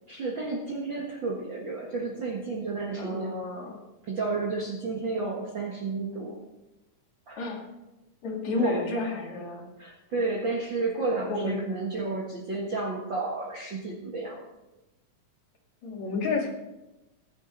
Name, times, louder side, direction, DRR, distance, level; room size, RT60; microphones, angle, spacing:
voice 1, 0.1-3.4 4.1-6.4 7.3-7.5 8.6-8.9 9.8-14.4, right 3 dB, 45° right, -3 dB, 1.7 m, -31 dB
voice 2, 3.0-3.8 7.4-7.6 8.2-9.6 11.3-11.6 15.8-16.5, left 3 dB, 55° left, 0 dB, 3.3 m, -30 dB
22.0 x 7.5 x 3.9 m, 1.0 s
omnidirectional pair, 4.1 m